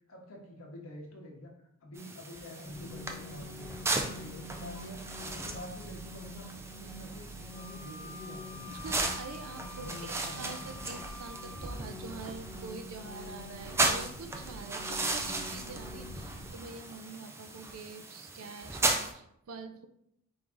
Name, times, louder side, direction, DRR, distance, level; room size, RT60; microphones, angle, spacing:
voice 1, 0.1-1.5 1.8-3.7 4.0-6.5 6.8-8.8 9.8-10.4, left 1 dB, 75° left, 0 dB, 1.0 m, -47 dB
sound 1, 2.0-19.1, right 2 dB, 10° right, 0.3 m, -36 dB
sound 2, 2.6-16.5, equal, 10° left, 0.8 m, -46 dB
Wind instrument woodwind instrument, 7.5-11.8, left 5 dB, 55° left, 0.6 m, -49 dB
voice 2, 8.7-19.9, right 4 dB, 85° right, 8 dB, 0.5 m, -45 dB
4.7 x 2.6 x 3.5 m, 0.76 s
head